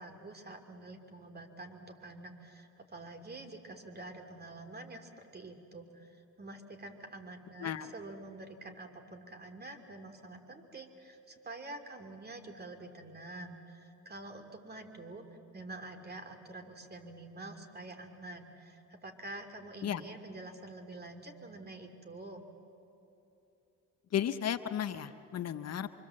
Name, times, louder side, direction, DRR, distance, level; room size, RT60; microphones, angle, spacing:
voice 1, 0.0-15.2 15.5-22.4, right 2 dB, 30° right, 5 dB, 2.7 m, -47 dB
voice 2, 24.1-25.9, left 9 dB, 55° left, 10 dB, 0.9 m, -34 dB
25.5 x 24.5 x 7.7 m, 2.9 s
cardioid pair, 90°, 30 cm